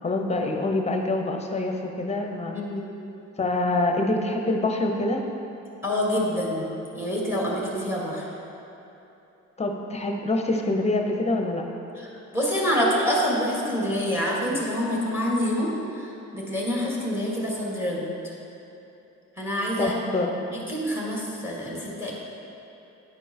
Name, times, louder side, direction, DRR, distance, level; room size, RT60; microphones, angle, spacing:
voice 1, 0.0-2.6 3.4-5.3 9.6-11.7 19.8-20.3, left 2 dB, 20° left, 3 dB, 0.8 m, -25 dB
voice 2, 2.5-2.9 5.8-8.3 12.0-18.3 19.4-19.9 20.5-22.1, equal, 10° right, -4 dB, 1.8 m, -27 dB
9.7 x 4.5 x 4.3 m, 2.9 s
cardioid pair, 90°, 30 cm